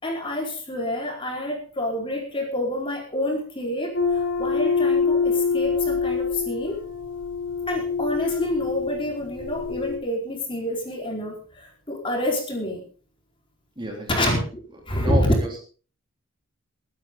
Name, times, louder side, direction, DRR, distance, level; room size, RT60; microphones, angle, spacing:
voice 1, 0.0-6.8 7.7-12.8 14.1-14.4 14.9-15.3, left 1 dB, 25° left, 0 dB, 4.5 m, -28 dB
sound 1, 3.9-10.0, left 5 dB, 60° left, 4.3 m, -25 dB
voice 2, 13.8-14.4 14.9-15.6, right 1 dB, 25° right, 0 dB, 3.4 m, -30 dB
22.0 x 10.5 x 3.9 m, 0.39 s
head